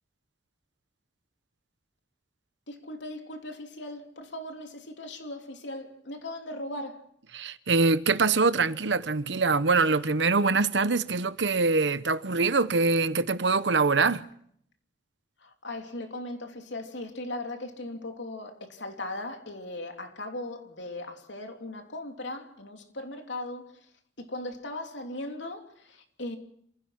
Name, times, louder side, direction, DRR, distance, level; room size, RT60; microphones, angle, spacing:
voice 1, 2.7-7.1 15.4-23.9 24.2-26.4, left 1 dB, 85° left, 3.1 m, -38 dB
voice 2, 7.3-14.3, right 4 dB, 80° right, 1.0 m, -24 dB
27.0 x 16.0 x 5.9 m
head